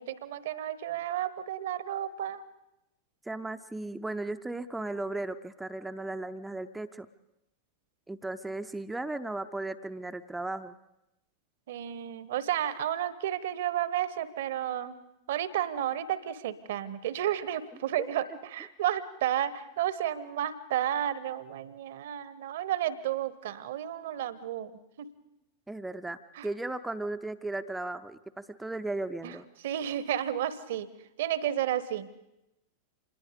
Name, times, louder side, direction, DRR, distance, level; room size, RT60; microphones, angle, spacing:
voice 1, 0.0-2.4 11.7-14.9 15.3-18.2 18.5-25.1 26.3-26.5 29.2-29.3 29.6-30.9 31.2-32.1, right 11 dB, 55° right, 17 dB, 1.1 m, -32 dB
voice 2, 3.2-7.1 8.1-10.8 18.0-18.1 25.7-29.4, right 2 dB, 5° right, 10 dB, 0.7 m, -36 dB
26.5 x 20.5 x 5.2 m, 0.89 s
figure-of-eight pair, 90°, 0 cm